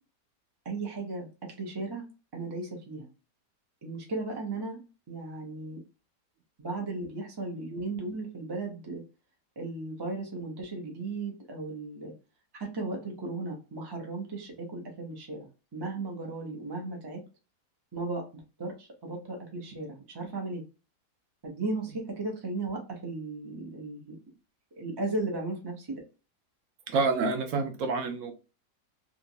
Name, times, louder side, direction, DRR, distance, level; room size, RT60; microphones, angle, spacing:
voice 1, 0.6-1.3 1.6-2.0 2.3-3.1 3.8-4.8 5.1-5.8 6.6-9.0 9.6-12.1 12.5-17.2 17.9-20.6 21.4-24.1 24.8-25.9, right 2 dB, 30° right, 0 dB, 0.4 m, -36 dB
voice 2, 26.9-28.3, right 4 dB, 60° right, 5 dB, 0.9 m, -28 dB
2.9 x 2.5 x 2.6 m, 0.32 s
omnidirectional pair, 1.8 m